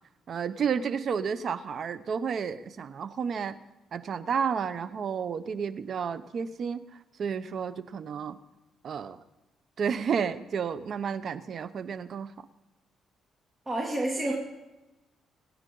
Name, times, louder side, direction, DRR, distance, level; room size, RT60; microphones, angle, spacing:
voice 1, 0.3-3.6 3.9-6.9 7.2-8.4 8.8-9.2 9.8-12.3, right 6 dB, 55° right, 14 dB, 0.8 m, -31 dB
voice 2, 13.7-14.4, right 1 dB, 15° right, -3 dB, 2.6 m, -29 dB
23.0 x 9.7 x 3.9 m, 1.0 s
cardioid pair, 90°, 0 cm